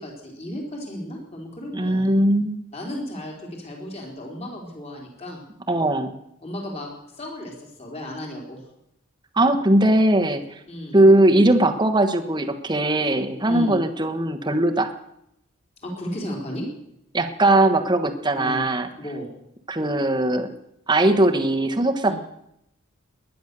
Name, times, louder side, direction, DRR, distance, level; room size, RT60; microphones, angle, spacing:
voice 1, 0.0-2.1 2.7-5.4 6.4-8.6 10.7-11.0 13.4-13.8 15.8-16.7 18.3-18.6 19.0-19.3 22.1-22.2, equal, 30° left, 0 dB, 3.6 m, -34 dB
voice 2, 1.7-2.6 5.7-6.1 9.4-10.6 10.9-14.9 17.1-18.9 19.7-20.5 20.9-22.1, right 1 dB, 20° right, 6 dB, 1.2 m, -19 dB
20.5 x 10.5 x 6.7 m, 0.80 s
head